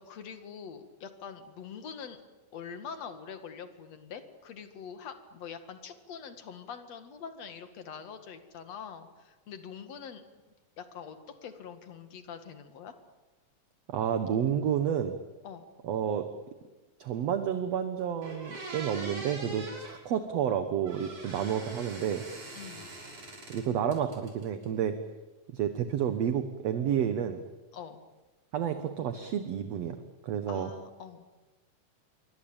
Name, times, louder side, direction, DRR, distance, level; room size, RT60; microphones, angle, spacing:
voice 1, 0.0-2.2 2.5-10.3 10.8-12.9 15.4-15.7 22.6-22.9 27.7-28.0 30.5-31.3, left 7 dB, 55° left, 8 dB, 3.0 m, -44 dB
voice 2, 13.9-15.1 15.8-16.3 17.0-22.2 23.5-25.0 25.5-27.4 28.5-30.0 30.2-30.7, right 9 dB, 60° right, 8 dB, 2.1 m, -30 dB
sound 1, 17.7-17.8 18.2-19.9 20.9-23.6 23.9-24.6, right 2 dB, 45° right, 6.9 m, -43 dB
26.5 x 24.0 x 8.9 m, 1.2 s
omnidirectional pair, 3.8 m